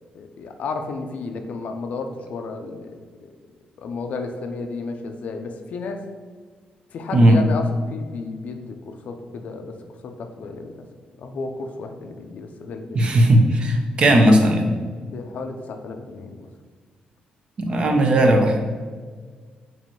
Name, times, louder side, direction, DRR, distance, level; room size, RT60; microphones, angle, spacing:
voice 1, 0.0-3.3 3.8-6.0 6.9-10.7 11.2-13.1 15.0-16.5, left 3 dB, 55° left, 6 dB, 0.4 m, -33 dB
voice 2, 12.9-14.7 17.6-18.6, right 1 dB, 35° right, 3 dB, 0.5 m, -16 dB
3.0 x 2.9 x 4.4 m, 1.5 s
cardioid pair, 155°, 3 cm